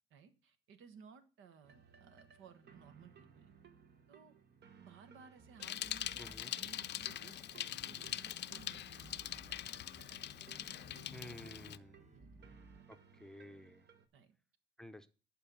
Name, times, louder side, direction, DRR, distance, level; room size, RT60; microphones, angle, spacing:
voice 1, 0.1-3.5 4.1-4.3 4.8-10.1 12.1-12.5 14.1-14.4, right 6 dB, 80° right, 1.3 m, -59 dB
sound 1, 1.6-14.1, right 6 dB, 60° right, 1.2 m, -61 dB
sound 2, 5.4-12.8, right 2 dB, 35° right, 1.4 m, -62 dB
Bicycle, 5.6-11.8, left 12 dB, 60° left, 0.5 m, -43 dB
voice 2, 6.2-6.5 11.1-12.1 12.9-13.8 14.8-15.1, left 1 dB, 5° left, 0.7 m, -52 dB
11.0 x 4.6 x 6.9 m
cardioid pair, 90°, 20 cm